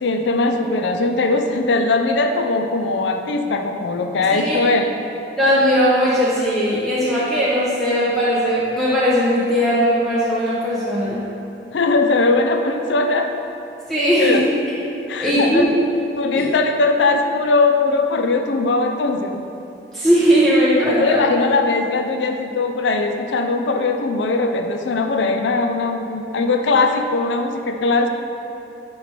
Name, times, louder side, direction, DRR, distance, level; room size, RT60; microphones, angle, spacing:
voice 1, 0.0-4.9 11.7-13.3 14.2-14.5 15.1-15.6 16.2-19.4 21.0-28.1, left 3 dB, 85° left, 6 dB, 0.4 m, -20 dB
voice 2, 5.4-11.2 13.9-14.4 15.2-15.7 16.4-16.5 19.9-21.2, equal, ahead, -10 dB, 0.8 m, -18 dB
9.0 x 3.2 x 4.4 m, 2.9 s
head